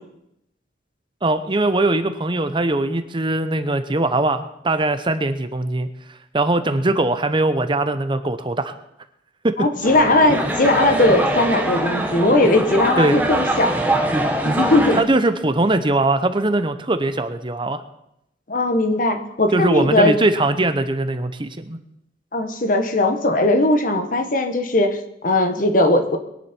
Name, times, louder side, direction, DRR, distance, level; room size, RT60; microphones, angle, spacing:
voice 1, 1.2-5.9 6.3-8.7 9.4-9.7 13.0-13.2 14.9-17.8 19.5-21.8, right 2 dB, 30° right, 10 dB, 0.8 m, -21 dB
voice 2, 9.6-13.7 14.4-15.0 18.5-20.1 22.3-26.2, left 2 dB, 50° left, 6 dB, 1.4 m, -18 dB
sound 1, 9.8-15.0, right 1 dB, 10° right, 1.6 m, -22 dB
22.0 x 10.5 x 4.5 m, 0.80 s
head